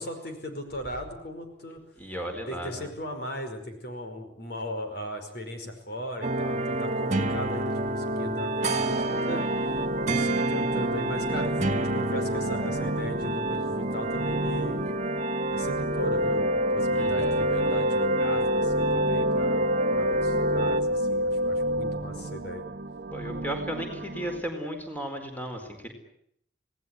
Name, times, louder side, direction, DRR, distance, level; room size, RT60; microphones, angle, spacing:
voice 1, 0.0-1.8 2.5-9.5 10.0-14.8 15.5-22.6, equal, 65° left, 5 dB, 5.1 m, -37 dB
voice 2, 2.0-2.9 16.9-17.3 23.1-25.9, equal, 10° left, 4 dB, 4.4 m, -35 dB
sound 1, 6.2-20.8, right 1 dB, 40° right, 1.7 m, -29 dB
sound 2, 8.9-24.4, right 2 dB, 65° right, 1.1 m, -35 dB
sound 3, 16.0-22.0, left 1 dB, 35° left, 3.5 m, -27 dB
27.0 x 18.5 x 9.7 m, 0.73 s
head